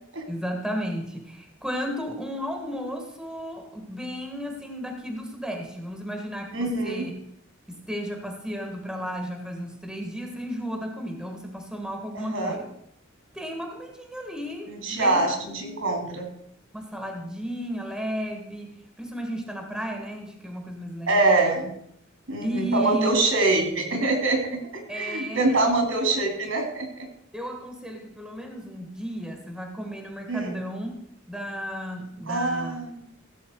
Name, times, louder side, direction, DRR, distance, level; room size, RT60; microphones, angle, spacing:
voice 1, 0.3-7.1 7.7-12.7 13.3-15.7 16.7-21.3 22.4-23.2 24.9-25.6 27.3-30.9 31.3-32.8, equal, 5° right, 3 dB, 1.6 m, -33 dB
voice 2, 6.5-7.0 12.1-12.6 14.7-16.3 21.1-21.7 22.3-24.6 24.9-27.1 30.3-30.6 32.2-33.1, right 2 dB, 75° right, 2 dB, 3.4 m, -24 dB
15.5 x 7.5 x 4.6 m, 0.72 s
head